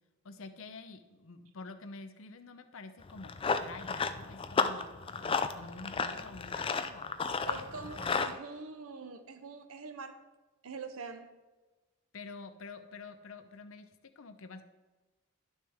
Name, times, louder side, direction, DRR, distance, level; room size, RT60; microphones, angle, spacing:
voice 1, 0.2-3.3 3.6-4.9 5.2-7.6 12.1-13.9 14.2-14.7, left 3 dB, 65° left, 0.7 m, -48 dB
Run, 3.0-8.3, left 5 dB, 25° left, 0.4 m, -33 dB
voice 2, 7.5-10.2 10.6-11.3, right 4 dB, 75° right, 0.8 m, -44 dB
11.5 x 6.3 x 3.5 m
head